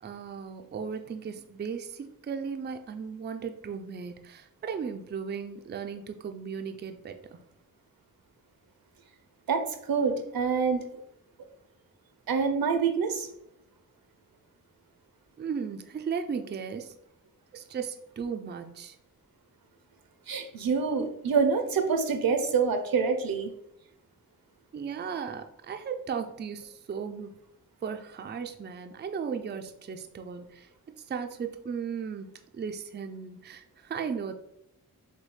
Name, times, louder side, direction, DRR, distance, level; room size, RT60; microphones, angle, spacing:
voice 1, 0.0-7.4 15.4-16.9 17.5-19.0 24.7-27.3 27.8-34.3, right 6 dB, 30° right, 6 dB, 0.4 m, -36 dB
voice 2, 9.5-10.8 12.3-13.3 20.3-23.5, right 5 dB, 80° right, 7 dB, 0.7 m, -26 dB
6.4 x 2.3 x 3.2 m, 0.77 s
wide cardioid pair, 115°, 35 cm